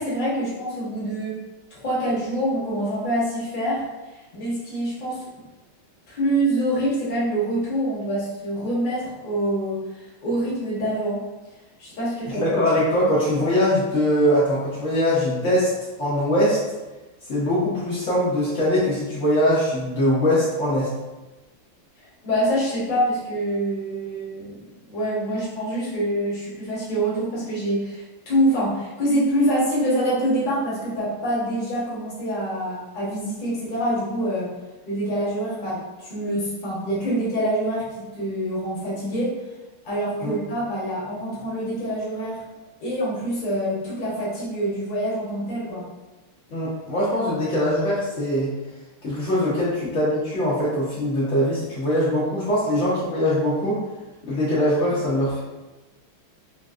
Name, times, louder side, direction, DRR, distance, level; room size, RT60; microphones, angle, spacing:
voice 1, 0.0-1.4 1.7-3.8 4.1-5.3 6.1-11.2 11.8-12.4 13.0-13.1 22.2-24.6 24.9-34.5 34.9-39.4 39.8-42.4 42.8-45.8, right 1 dB, 50° left, -7 dB, 0.6 m, -25 dB
voice 2, 12.3-15.7 16.0-16.6 17.3-20.9 40.2-40.3 46.5-48.5 49.0-53.8 54.2-55.4, left 1 dB, 90° left, -9 dB, 0.6 m, -22 dB
3.9 x 2.4 x 2.4 m, 1.1 s
omnidirectional pair, 2.3 m